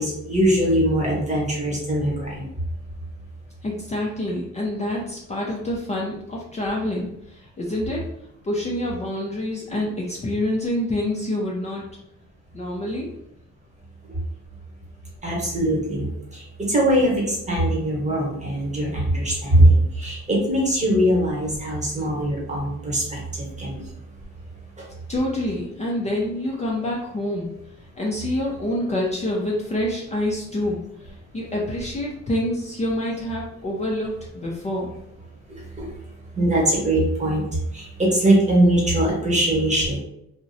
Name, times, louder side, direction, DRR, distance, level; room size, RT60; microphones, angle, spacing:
voice 1, 0.0-2.5 15.2-23.9 24.8-24.9 35.5-35.9 36.3-40.0, right 1 dB, 25° right, -3 dB, 1.1 m, -21 dB
voice 2, 3.6-8.0 8.4-11.8 12.5-13.1 25.1-27.5 28.0-34.9, left 1 dB, 25° left, -3 dB, 0.4 m, -27 dB
2.5 x 2.0 x 2.6 m, 0.79 s
cardioid pair, 90°, 30 cm